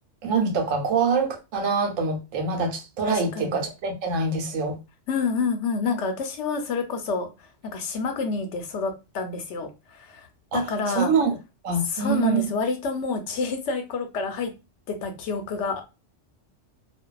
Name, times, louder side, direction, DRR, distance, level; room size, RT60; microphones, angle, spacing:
voice 1, 0.2-4.8 10.5-11.3 11.6-12.5, right 4 dB, 85° right, 1.1 m, -25 dB
voice 2, 3.1-3.6 5.1-10.3 10.5-11.1 11.8-14.5 14.9-15.8, left 4 dB, 70° left, 0.9 m, -28 dB
2.5 x 2.2 x 2.2 m
omnidirectional pair, 1.3 m